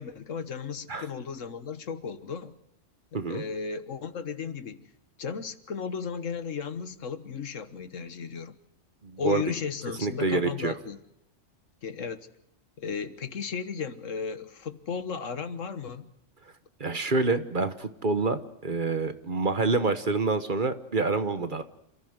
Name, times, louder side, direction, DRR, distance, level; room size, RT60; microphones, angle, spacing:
voice 1, 0.0-2.5 3.3-4.9 5.2-8.5 9.2-11.0 11.8-12.3 12.8-16.1, left 6 dB, 75° left, 11 dB, 1.6 m, -35 dB
voice 2, 9.0-9.4 10.0-10.7 16.8-21.6, right 3 dB, 40° right, 10 dB, 1.2 m, -27 dB
27.5 x 14.5 x 8.0 m, 0.82 s
omnidirectional pair, 1.3 m